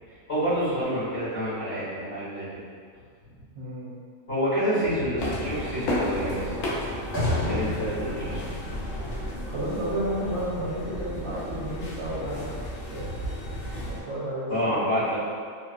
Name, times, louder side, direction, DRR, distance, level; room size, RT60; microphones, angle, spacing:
voice 1, 0.3-2.6 4.3-6.7 7.5-8.4 14.5-15.2, equal, 50° left, -12 dB, 1.5 m, -28 dB
voice 2, 3.5-3.9 9.4-12.6 12.9-13.2 13.9-14.8, right 1 dB, 65° right, -10 dB, 0.9 m, -32 dB
sound 1, 4.8-9.8, left 1 dB, 30° right, 1.6 m, -33 dB
sound 2, 5.2-14.0, equal, 90° left, 1.0 m, -33 dB
2.8 x 2.4 x 2.4 m, 2.1 s
omnidirectional pair, 1.3 m